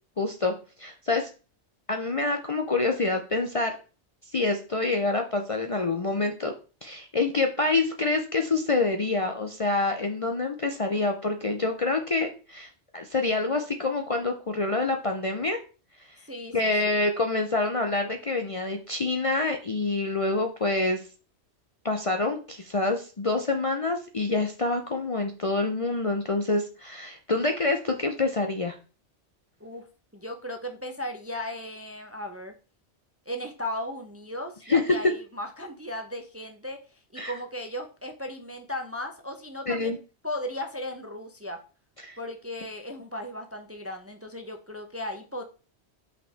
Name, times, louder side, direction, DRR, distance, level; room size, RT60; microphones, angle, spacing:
voice 1, 0.2-0.5 0.8-1.3 1.9-3.7 4.3-6.5 6.8-15.6 16.5-21.0 21.8-28.8 34.7-34.8 37.2-37.3 39.7-40.0 42.0-42.2, left 3 dB, 40° left, 4 dB, 0.6 m, -27 dB
voice 2, 16.3-17.0 29.6-29.9 30.1-32.5 33.3-40.0 40.2-41.6 42.2-45.4, left 1 dB, 15° right, 5 dB, 0.6 m, -36 dB
5.6 x 5.2 x 3.4 m, 0.35 s
omnidirectional pair, 1.1 m